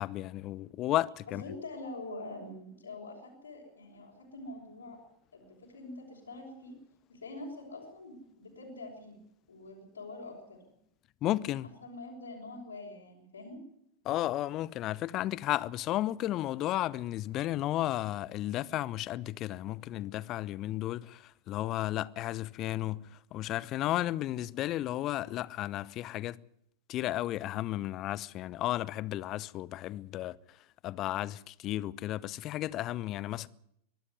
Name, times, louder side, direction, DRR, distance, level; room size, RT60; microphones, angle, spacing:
voice 1, 0.0-1.4 11.2-11.7 14.0-26.4 26.9-30.6 30.8-33.5, left 14 dB, 35° left, 0.7 m, -33 dB
voice 2, 1.4-5.0 5.3-6.7 7.1-9.2 9.5-10.6 11.8-13.6, left 2 dB, 75° left, 5.6 m, -45 dB
23.0 x 13.0 x 9.5 m
figure-of-eight pair, 90°, 0 cm